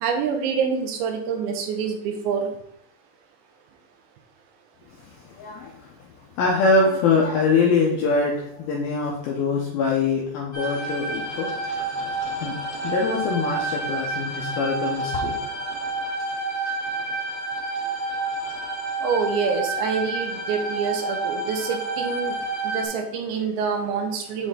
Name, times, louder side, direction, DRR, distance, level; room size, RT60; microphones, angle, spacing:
voice 1, 0.0-2.5 19.0-22.3 22.7-24.5, right 6 dB, 85° right, 4 dB, 3.1 m, -26 dB
voice 2, 5.0-6.0 6.4-11.5 12.4-12.6 12.8-15.4, left 4 dB, 85° left, -3 dB, 2.1 m, -23 dB
sound 1, 10.5-22.9, right 3 dB, 30° left, 1.7 m, -29 dB
8.1 x 4.2 x 3.8 m, 0.74 s
omnidirectional pair, 5.3 m